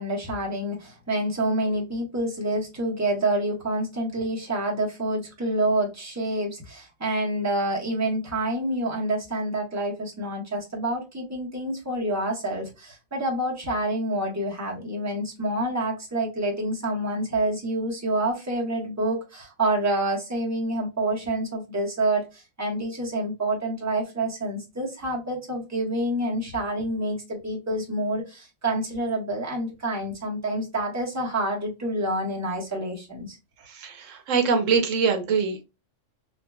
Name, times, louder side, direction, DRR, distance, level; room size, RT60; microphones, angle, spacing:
voice 1, 0.0-33.4, right 1 dB, 15° right, -2 dB, 1.1 m, -27 dB
voice 2, 33.6-35.6, right 5 dB, 75° right, 6 dB, 1.0 m, -24 dB
3.8 x 3.0 x 2.2 m, 0.26 s
omnidirectional pair, 1.3 m